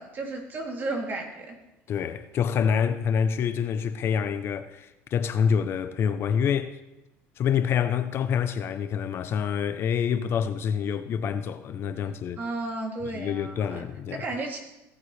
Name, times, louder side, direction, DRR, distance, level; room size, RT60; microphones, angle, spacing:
voice 1, 0.0-1.6 12.4-13.8 14.1-14.6, right 2 dB, 40° right, 2.9 m, -33 dB
voice 2, 1.9-6.8 7.4-12.4 13.1-14.2, left 7 dB, 50° left, 0.7 m, -27 dB
17.0 x 9.5 x 3.3 m
supercardioid pair, 110°, 5 cm